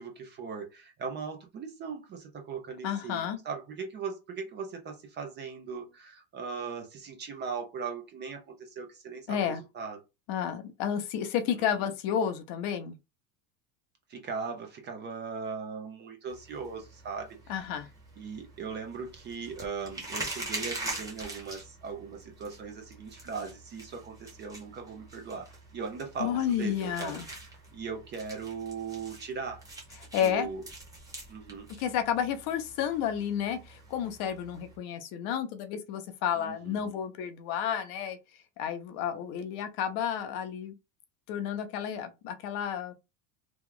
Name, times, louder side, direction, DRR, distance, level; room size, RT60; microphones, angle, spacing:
voice 1, 0.0-10.0 11.5-11.8 14.1-17.6 18.2-25.5 25.7-27.2 27.7-29.6 30.2-30.6 31.3-31.7 36.3-36.9, right 5 dB, 25° right, 0.5 m, -39 dB
voice 2, 2.8-3.4 9.3-9.6 10.3-13.0 17.5-17.9 26.2-27.2 30.1-30.5 31.8-38.2 38.6-40.7 41.3-42.9, left 9 dB, 55° left, 0.7 m, -31 dB
sound 1, 16.3-34.8, right 2 dB, 10° right, 1.0 m, -44 dB
3.0 x 2.3 x 3.7 m
cardioid pair, 155°, 43 cm